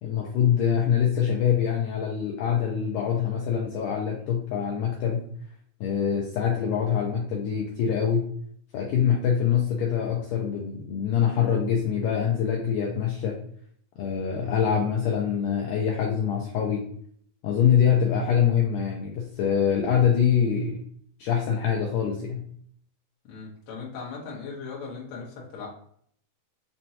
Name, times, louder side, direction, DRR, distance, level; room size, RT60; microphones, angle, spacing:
voice 1, 0.0-5.2 5.8-8.3 8.7-13.4 14.0-16.8 17.4-20.8 21.2-22.5, left 8 dB, 85° left, -1 dB, 1.9 m, -24 dB
voice 2, 23.2-25.7, left 5 dB, 70° left, -4 dB, 1.3 m, -38 dB
6.1 x 2.2 x 2.7 m, 0.62 s
omnidirectional pair, 4.3 m